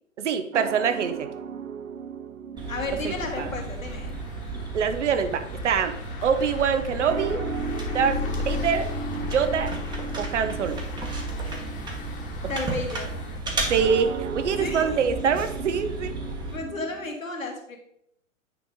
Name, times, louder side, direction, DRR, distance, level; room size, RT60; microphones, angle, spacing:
voice 1, 0.2-1.3 3.0-3.5 4.5-5.9 6.2-7.4 7.9-8.9 9.2-9.7 10.2-10.8 13.7-16.1, right 6 dB, 65° right, 10 dB, 0.9 m, -25 dB
sound 1, 0.5-17.1, right 7 dB, 85° right, 0.6 m, -38 dB
sound 2, 2.6-16.6, right 2 dB, 10° right, 1.1 m, -34 dB
voice 2, 2.7-4.1 8.1-8.4 12.4-13.2 14.6-15.0 16.3-17.8, left 2 dB, 85° left, 2 dB, 1.9 m, -33 dB
sound 3, 2.9-13.4, left 8 dB, 45° left, 1.4 m, -37 dB
9.1 x 5.1 x 3.7 m, 0.75 s
figure-of-eight pair, 115°, 39 cm